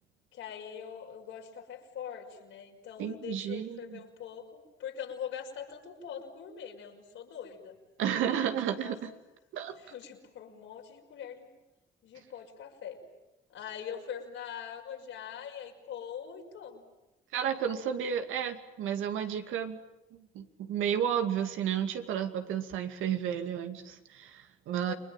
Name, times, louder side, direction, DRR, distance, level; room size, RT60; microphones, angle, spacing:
voice 1, 0.3-7.8 8.6-8.9 9.8-11.5 12.0-13.0 13.5-16.8 24.9-25.0, left 8 dB, 80° left, 1 dB, 5.9 m, -43 dB
voice 2, 3.0-4.0 8.0-9.1 9.5-9.7 17.3-19.8 20.1-24.9, right 9 dB, 90° right, 7 dB, 2.5 m, -32 dB
29.5 x 22.0 x 9.1 m, 0.97 s
cardioid pair, 90°, 20 cm